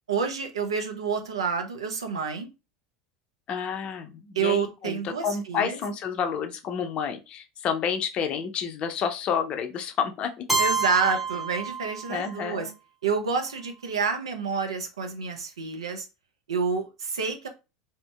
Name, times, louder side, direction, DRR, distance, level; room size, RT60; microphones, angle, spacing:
voice 1, 0.1-2.5 4.3-5.8 10.6-12.7 13.0-16.1 16.5-17.5, right 5 dB, 85° right, 5 dB, 0.6 m, -28 dB
voice 2, 3.5-10.5 12.1-12.7, left 7 dB, 45° left, 7 dB, 0.5 m, -30 dB
Keyboard (musical), 10.5-12.4, right 4 dB, 10° right, 0.7 m, -28 dB
2.7 x 2.6 x 2.3 m, 0.28 s
hypercardioid pair, 85°, 3 cm